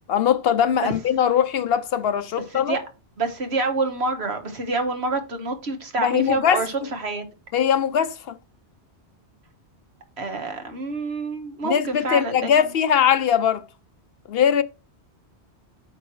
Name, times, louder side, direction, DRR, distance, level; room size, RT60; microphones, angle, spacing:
voice 1, 0.1-2.8 6.0-6.6 7.5-8.4 11.6-13.6 14.3-14.6, left 8 dB, 65° left, 0.8 m, -21 dB
voice 2, 3.2-7.2 10.2-12.7, right 3 dB, 70° right, 1.6 m, -27 dB
8.5 x 5.6 x 3.1 m
omnidirectional pair, 1.1 m